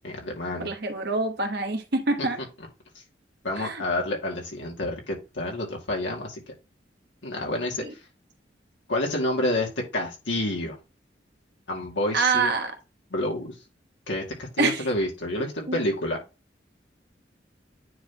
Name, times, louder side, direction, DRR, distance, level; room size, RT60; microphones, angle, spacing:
voice 1, 0.0-0.7 2.2-2.3 3.4-6.4 7.2-7.8 8.9-10.8 11.7-12.5 13.1-13.5 14.1-16.2, left 1 dB, 85° left, -1 dB, 2.3 m, -29 dB
voice 2, 0.6-2.4 3.6-3.8 7.8-7.9 12.1-12.7 14.6-14.9 15.7-15.8, right 3 dB, 60° right, 6 dB, 1.3 m, -25 dB
9.4 x 4.0 x 3.0 m, 0.28 s
head